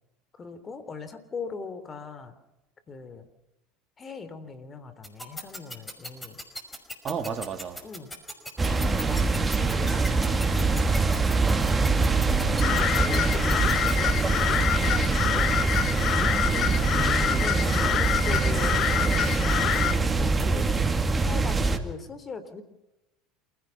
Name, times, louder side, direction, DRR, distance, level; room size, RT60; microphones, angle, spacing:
voice 1, 0.4-2.4 2.9-3.3 4.0-6.4 7.8-8.1 8.6-11.1 11.9-15.7 17.2-20.7 21.2-22.6, left 4 dB, 30° left, 3.5 m, -40 dB
sound 1, 5.0-13.9, left 1 dB, 10° left, 5.7 m, -36 dB
voice 2, 7.0-7.8 16.5-17.7 21.6-21.8, right 6 dB, 40° right, 2.8 m, -34 dB
sound 2, 8.6-21.8, right 3 dB, 20° right, 2.2 m, -24 dB
sound 3, 12.6-20.0, left 10 dB, 50° left, 1.2 m, -27 dB
28.0 x 16.5 x 5.9 m
hypercardioid pair, 85°, 0 cm